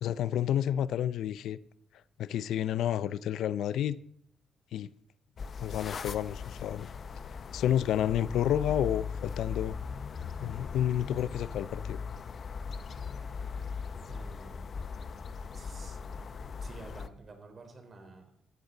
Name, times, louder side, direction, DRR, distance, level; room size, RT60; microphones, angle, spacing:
voice 1, 0.0-1.6 2.2-4.0 4.7-4.9 5.6-6.9 7.2-9.8 10.4-12.0, left 10 dB, 80° left, 0.5 m, -30 dB
sound 1, 5.4-17.1, left 5 dB, 45° left, 0.8 m, -39 dB
voice 2, 14.1-14.7 15.5-16.0 16.4-18.4, right 3 dB, 40° right, 4.2 m, -51 dB
17.5 x 13.0 x 4.0 m
cardioid pair, 90°, 0 cm